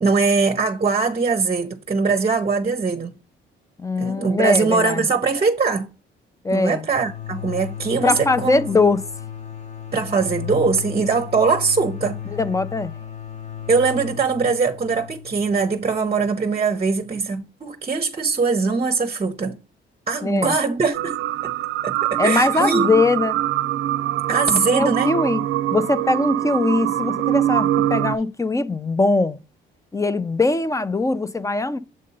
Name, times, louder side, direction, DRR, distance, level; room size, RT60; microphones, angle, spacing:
voice 1, 0.0-3.1 4.0-5.9 6.5-8.7 9.9-12.2 13.7-19.6 20.1-21.2 21.4-21.5 21.8-22.9 24.3-25.1, right 4 dB, 30° right, 0.7 m, -21 dB
voice 2, 3.8-5.1 6.4-6.9 8.0-9.0 12.3-12.9 20.2-20.5 22.2-23.3 24.7-25.4 25.7-29.4 29.9-31.8, left 3 dB, 15° left, 0.5 m, -21 dB
sound 1, 6.9-16.4, left 9 dB, 35° left, 0.9 m, -35 dB
sound 2, 20.9-28.2, right 13 dB, 80° right, 0.4 m, -23 dB
7.6 x 2.7 x 5.2 m
cardioid pair, 90°, 20 cm